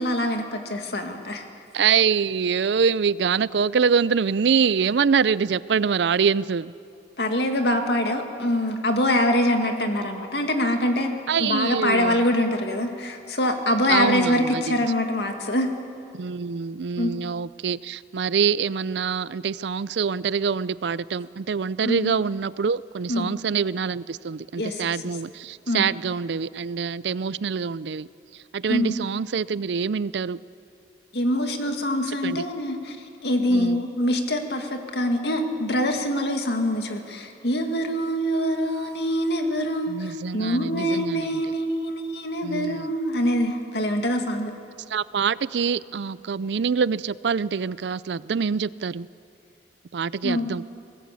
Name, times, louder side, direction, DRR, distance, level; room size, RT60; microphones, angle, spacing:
voice 1, 0.0-1.5 7.2-11.1 11.4-15.7 17.0-17.1 21.8-22.1 23.1-23.3 24.6-25.0 25.7-25.9 28.7-29.0 31.1-33.0 33.2-44.5 50.2-50.5, left 1 dB, 70° left, 4 dB, 2.2 m, -24 dB
voice 2, 1.7-6.7 11.3-12.2 13.9-14.8 16.1-28.1 28.5-30.4 32.2-32.4 33.5-33.8 39.9-41.4 42.4-42.9 44.9-49.1 49.9-50.6, right 6 dB, 80° right, 19 dB, 0.5 m, -25 dB
21.5 x 18.5 x 8.4 m, 2.5 s
head